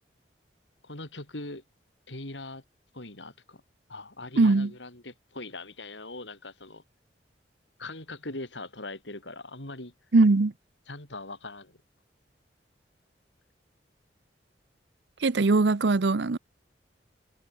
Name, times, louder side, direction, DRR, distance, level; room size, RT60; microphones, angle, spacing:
voice 1, 0.8-1.6 2.1-2.6 2.9-3.6 3.9-6.8 7.8-9.9 10.9-11.8, left 2 dB, 90° left, 5.9 m, -41 dB
voice 2, 4.4-4.7 10.1-10.5 15.2-16.4, right 3 dB, 75° right, 0.7 m, -21 dB
head